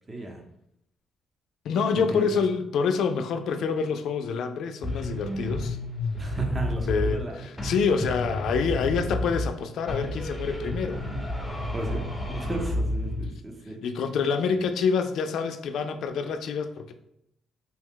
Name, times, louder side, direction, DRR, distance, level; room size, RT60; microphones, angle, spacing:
voice 1, 0.1-0.4 2.0-2.3 6.1-7.4 11.7-13.8, right 2 dB, 25° right, 2 dB, 0.7 m, -34 dB
voice 2, 1.6-5.8 6.9-11.0 12.2-12.4 13.8-16.9, left 5 dB, 75° left, 7 dB, 0.3 m, -27 dB
sound 1, 4.8-7.3 7.6-9.6 9.9-13.3, left 1 dB, 10° left, 0.8 m, -31 dB
2.8 x 2.2 x 3.6 m, 0.78 s
cardioid pair, 90°, 0 cm